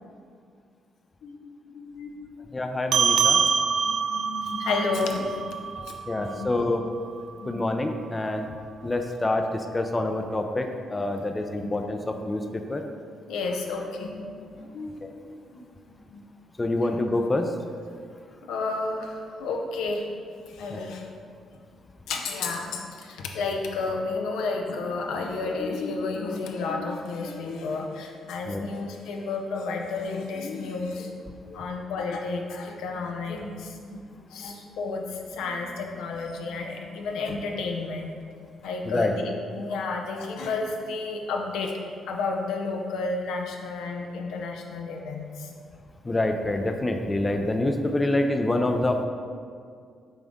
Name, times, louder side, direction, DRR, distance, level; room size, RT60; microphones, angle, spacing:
voice 1, 1.7-2.5 3.7-5.4 5.8-6.5 7.4-7.6 11.6-11.7 13.3-15.2 15.5-16.2 18.5-20.1 20.5-21.1 22.1-31.1 31.5-34.0 34.3-38.1 38.6-41.7 42.1-45.5, left 3 dB, 85° left, 2 dB, 0.6 m, -32 dB
voice 2, 2.5-3.4 6.1-6.8 7.5-8.5 8.8-12.4 12.7-12.8 16.6-17.5 20.7-20.8 28.5-28.6 38.9-39.1 46.1-49.1, left 2 dB, 20° left, 5 dB, 0.4 m, -26 dB
sound 1, 2.9-7.7, right 6 dB, 65° right, 0.4 m, -26 dB
7.0 x 3.9 x 3.6 m, 2.2 s
cardioid pair, 90°, 0 cm